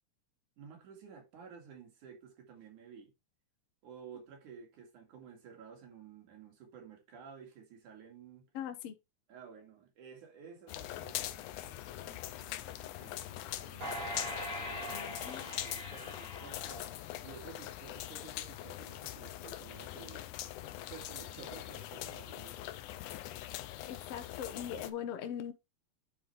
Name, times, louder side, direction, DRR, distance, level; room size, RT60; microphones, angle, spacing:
voice 1, 0.6-3.1 3.8-8.5 9.3-16.8 17.2-20.3 20.9-22.8, right 7 dB, 80° right, 3.8 m, -53 dB
voice 2, 8.5-9.0 14.9-15.4 23.9-25.5, left 9 dB, 65° left, 1.8 m, -41 dB
sound 1, 10.7-24.9, left 14 dB, 85° left, 2.2 m, -42 dB
sound 2, 13.8-17.3 17.7-17.8, equal, 55° right, 5.6 m, -42 dB
9.7 x 4.5 x 3.2 m
omnidirectional pair, 3.5 m